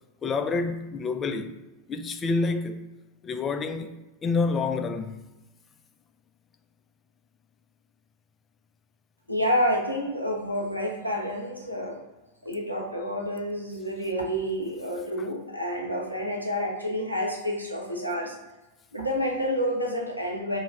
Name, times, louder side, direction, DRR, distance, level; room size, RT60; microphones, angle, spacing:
voice 1, 0.2-1.5 1.9-2.9 3.2-3.9 4.2-5.2 15.2-15.3, left 4 dB, 20° left, 0.3 m, -28 dB
voice 2, 9.3-12.0 12.4-18.4 18.9-20.6, equal, 90° right, 0.7 m, -29 dB
3.9 x 2.1 x 4.5 m
figure-of-eight pair, 90°, 0 cm